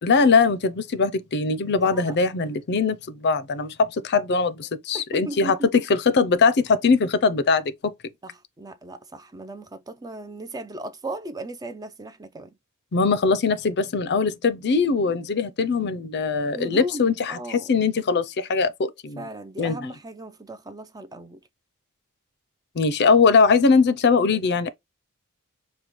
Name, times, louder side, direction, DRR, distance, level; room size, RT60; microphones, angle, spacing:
voice 1, 0.0-7.9 12.9-19.2 19.6-19.9 22.8-24.7, left 4 dB, 50° left, 0.5 m, -21 dB
voice 2, 1.8-2.2 4.9-5.8 8.2-12.5 16.5-17.7 19.2-21.4, right 1 dB, 15° right, 0.4 m, -37 dB
5.1 x 2.2 x 3.0 m
head